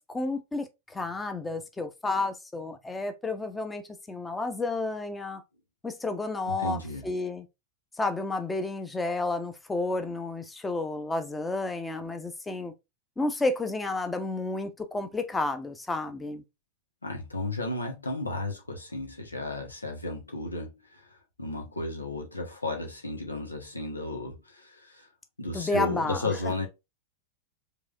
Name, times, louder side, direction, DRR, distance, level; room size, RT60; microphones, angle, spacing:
voice 1, 0.0-5.4 5.8-7.5 8.0-12.7 13.2-16.4 25.5-26.3, left 2 dB, 10° left, 0.9 m, -31 dB
voice 2, 6.5-7.0 17.0-25.1 25.4-26.7, left 2 dB, 80° left, 1.4 m, -34 dB
4.8 x 3.5 x 2.6 m
figure-of-eight pair, 90°, 0 cm